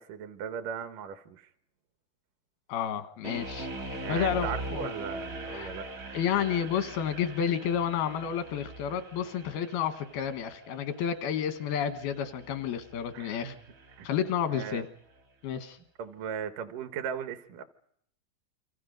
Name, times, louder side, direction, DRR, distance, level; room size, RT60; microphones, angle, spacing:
voice 1, 0.0-1.5 3.9-5.9 13.1-13.6 14.0-14.1 14.5-14.9 16.0-17.6, right 7 dB, 70° right, 8 dB, 2.5 m, -37 dB
voice 2, 2.7-4.9 5.5-5.7 6.1-13.5 14.0-14.9 15.4-15.8, left 8 dB, 85° left, 9 dB, 3.2 m, -31 dB
sound 1, 3.2-14.3, right 1 dB, 45° right, 1.1 m, -42 dB
28.0 x 25.0 x 5.3 m, 0.70 s
omnidirectional pair, 4.3 m